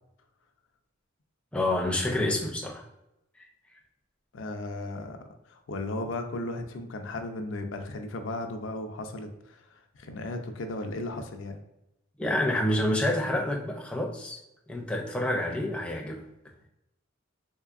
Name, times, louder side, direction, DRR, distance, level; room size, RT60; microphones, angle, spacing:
voice 1, 1.5-2.9 3.4-3.5 12.2-14.4 14.7-16.2, left 1 dB, 5° left, -1 dB, 0.4 m, -28 dB
voice 2, 4.3-5.2 5.4-11.6, left 2 dB, 75° left, 5 dB, 0.4 m, -36 dB
3.6 x 3.2 x 2.4 m, 0.86 s
head